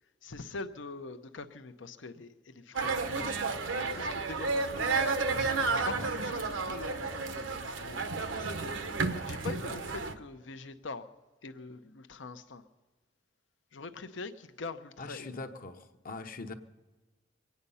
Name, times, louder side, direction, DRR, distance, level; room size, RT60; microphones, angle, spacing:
voice 1, 0.2-11.1 11.4-12.6 13.7-15.4, left 3 dB, 75° left, 0.8 m, -44 dB
sound 1, 2.8-10.1, right 4 dB, 90° right, 1.1 m, -32 dB
voice 2, 15.0-16.5, left 3 dB, 50° left, 1.0 m, -42 dB
24.0 x 9.4 x 5.6 m
head